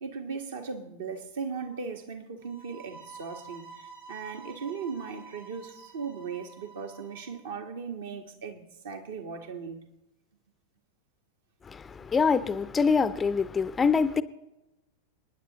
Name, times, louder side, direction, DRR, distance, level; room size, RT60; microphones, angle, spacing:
voice 1, 0.0-9.8, right 5 dB, 60° right, 1.6 m, -38 dB
sound 1, 2.4-7.4, right 4 dB, 85° right, 4.0 m, -49 dB
voice 2, 11.6-14.2, left 5 dB, 15° left, 0.5 m, -25 dB
29.5 x 10.0 x 3.1 m
figure-of-eight pair, 90°, 0 cm